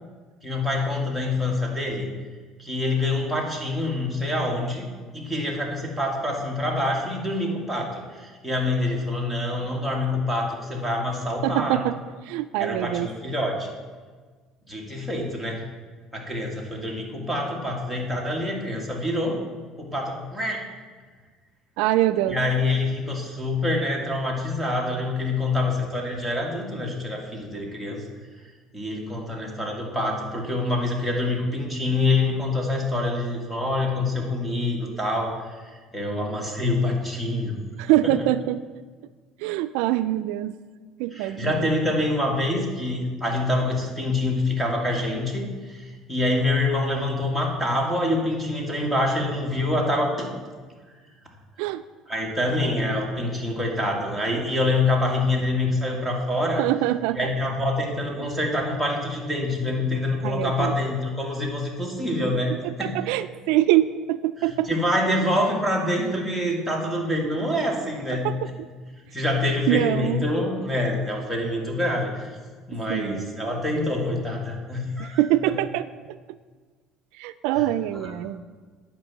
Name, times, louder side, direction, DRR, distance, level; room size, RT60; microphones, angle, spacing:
voice 1, 0.4-2.1 2.6-11.8 12.6-13.7 14.7-15.6 16.1-19.4 19.8-20.6 22.3-28.0 28.7-35.6 35.9-37.6 38.2-38.3 41.1-50.3 52.1-56.7 57.1-63.0 64.4-68.3 69.1-72.2 72.7-75.2 77.9-78.1, left 2 dB, 5° left, 0 dB, 1.8 m, -26 dB
voice 2, 11.4-12.0 12.3-13.1 21.8-22.4 37.8-38.6 39.4-40.6 41.0-41.6 51.6-51.8 56.6-57.2 58.2-58.3 60.2-60.8 62.6-64.7 68.2-68.4 69.7-70.2 72.9-73.3 75.0-76.2 77.2-78.4, right 14 dB, 85° right, 12 dB, 0.3 m, -24 dB
9.0 x 5.3 x 7.4 m, 1.4 s
cardioid pair, 140°, 0 cm